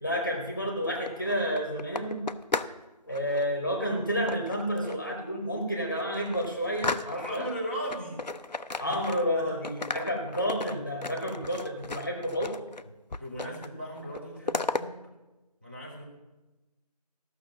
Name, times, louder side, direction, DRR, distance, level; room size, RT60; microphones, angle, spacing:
voice 1, 0.0-2.2 3.1-7.5 8.8-12.6, equal, 20° left, 1 dB, 1.1 m, -30 dB
sound 1, 0.8-2.8 3.1-3.5 4.3-5.1 5.5-5.6 6.0-7.5 7.9-9.4 9.6-12.8 13.1-13.7 14.0-14.8, left 3 dB, 85° left, 0.7 m, -35 dB
voice 2, 7.1-8.2 8.8-9.0 9.3-9.6 9.9-10.1 13.2-14.9 15.6-16.0, equal, 15° right, -3 dB, 1.0 m, -37 dB
14.5 x 6.3 x 7.1 m, 1.1 s
figure-of-eight pair, 175°, 21 cm